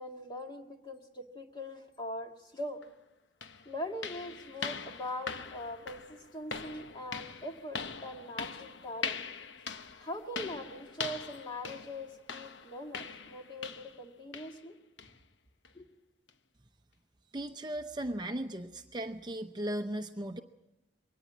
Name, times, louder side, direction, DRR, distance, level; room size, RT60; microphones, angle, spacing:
voice 1, 0.0-2.9 3.7-9.2 10.0-14.7 15.7-15.9, left 1 dB, 25° left, 3 dB, 1.8 m, -42 dB
sound 1, 2.8-2.9 3.4-14.0 14.3-14.6 15.0-15.2 15.6-15.7 16.3-16.4, left 5 dB, 85° left, 1.0 m, -42 dB
voice 2, 17.3-20.4, right 1 dB, 25° right, 6 dB, 0.7 m, -37 dB
22.5 x 17.5 x 7.3 m, 0.93 s
head